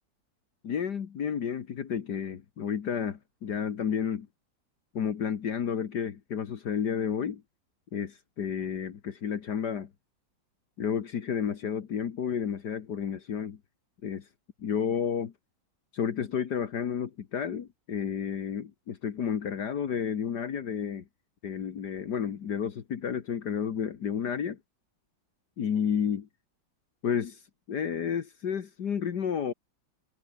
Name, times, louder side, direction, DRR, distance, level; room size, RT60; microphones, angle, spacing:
voice 1, 0.6-4.3 4.9-7.4 7.9-9.9 10.8-13.6 14.0-14.3 14.6-15.3 15.9-21.0 21.4-24.6 25.6-26.3 27.0-27.4 27.7-29.5, left 7 dB, 65° left, 2.0 m, -31 dB
omnidirectional pair, 2.0 m